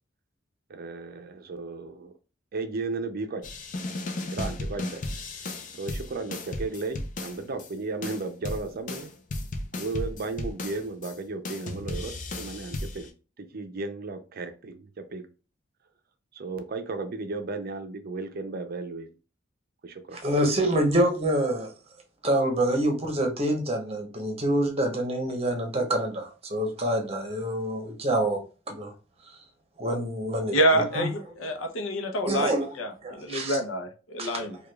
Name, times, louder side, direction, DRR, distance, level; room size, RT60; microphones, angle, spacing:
voice 1, 0.7-2.1 2.5-3.4 4.3-5.1 5.4-9.1 9.8-13.1 13.4-15.3 16.3-19.1 19.8-20.2, right 3 dB, 50° right, 0.5 m, -35 dB
sound 1, 3.4-7.7 8.0-11.1 11.5-13.1, left 2 dB, 40° left, 0.6 m, -35 dB
voice 2, 20.1-21.7 22.2-28.4 28.7-28.9 29.8-31.1 32.3-32.7 33.0-33.6 34.2-34.5, right 1 dB, 30° right, 0.9 m, -26 dB
voice 3, 30.5-34.6, right 1 dB, 85° left, 0.7 m, -27 dB
4.8 x 2.3 x 2.3 m
head